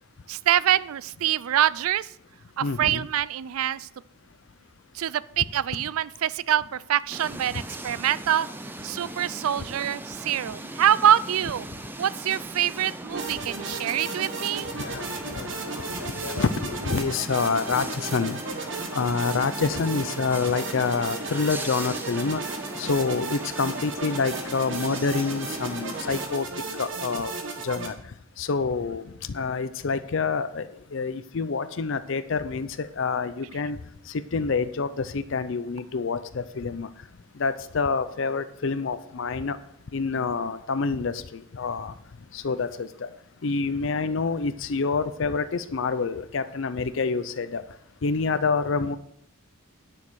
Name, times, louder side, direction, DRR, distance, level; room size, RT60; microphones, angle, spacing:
voice 1, 0.3-2.1 2.6-3.9 4.9-8.5 8.8-11.7 12.0-14.7, right 10 dB, 80° right, 19 dB, 0.4 m, -25 dB
voice 2, 2.6-3.1 14.8-15.0 15.3-15.4 15.7-18.4 18.9-22.4 22.8-26.5 26.8-27.3 27.6-27.9 28.4-29.0 29.3-33.8 34.3-36.9 37.4-39.6 39.9-41.9 42.3-42.9 43.4-47.6 48.0-49.0, left 4 dB, 60° left, 13 dB, 0.5 m, -27 dB
sound 1, 7.1-26.3, right 1 dB, 10° right, 0.6 m, -39 dB
sound 2, 13.1-27.9, right 3 dB, 60° right, 1.6 m, -35 dB
10.0 x 6.4 x 6.3 m, 0.74 s
head